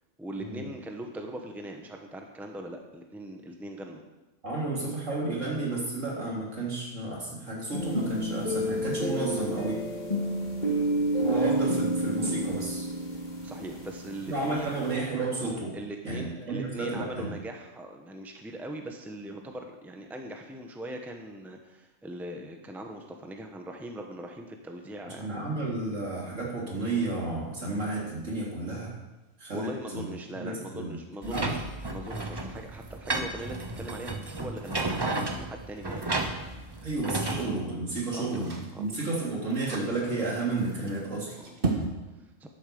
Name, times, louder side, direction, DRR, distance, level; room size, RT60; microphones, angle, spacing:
voice 1, 0.2-4.0 13.4-14.7 15.7-25.3 29.5-36.2 38.1-39.0 41.4-42.5, right 1 dB, ahead, 3 dB, 1.0 m, -41 dB
voice 2, 4.4-9.8 11.2-12.9 14.3-15.8 16.0-17.3 25.0-28.9 29.4-30.1 30.4-31.0 31.2-31.6 36.8-38.5 38.8-41.4, right 2 dB, 70° right, -3 dB, 3.5 m, -32 dB
sound 1, 7.7-14.9, right 1 dB, 35° left, 2.2 m, -30 dB
sound 2, 25.5-41.9, right 3 dB, 45° right, 1.8 m, -42 dB
sound 3, 31.2-37.4, right 2 dB, 20° right, 1.0 m, -33 dB
11.0 x 8.6 x 6.9 m, 1.1 s
omnidirectional pair, 1.3 m